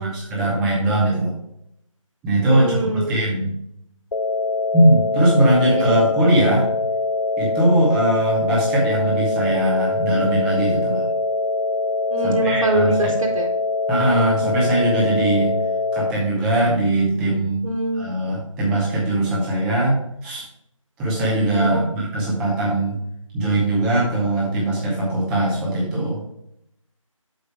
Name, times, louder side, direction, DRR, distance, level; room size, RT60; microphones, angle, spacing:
voice 1, 0.0-1.3 2.2-3.5 4.7-6.7 7.4-11.1 12.2-13.1 13.9-15.5 15.9-17.6 17.9-20.4 21.0-23.0 23.3-26.2, right 1 dB, 5° right, -5 dB, 0.7 m, -20 dB
voice 2, 2.4-3.2 5.7-5.9 12.1-13.5 17.6-18.2 21.6-21.7, right 1 dB, 80° right, -1 dB, 1.6 m, -24 dB
sound 1, 4.1-16.1, left 3 dB, 70° left, 0.5 m, -23 dB
6.6 x 4.9 x 4.7 m, 0.76 s
figure-of-eight pair, 165°, 17 cm